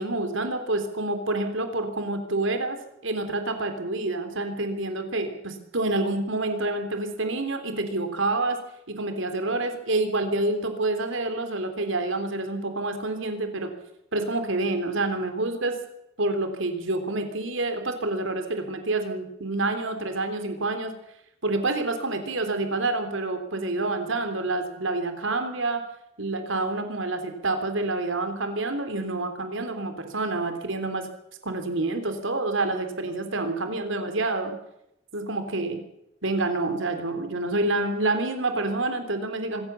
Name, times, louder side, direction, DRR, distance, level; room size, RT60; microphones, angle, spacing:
voice 1, 0.0-8.6 8.9-13.7 14.1-15.8 16.2-20.9 21.4-25.8 26.2-31.1 31.4-34.5 35.1-35.8 36.2-39.6, right 2 dB, 75° right, 7 dB, 3.3 m, -28 dB
25.0 x 15.0 x 7.0 m, 0.82 s
head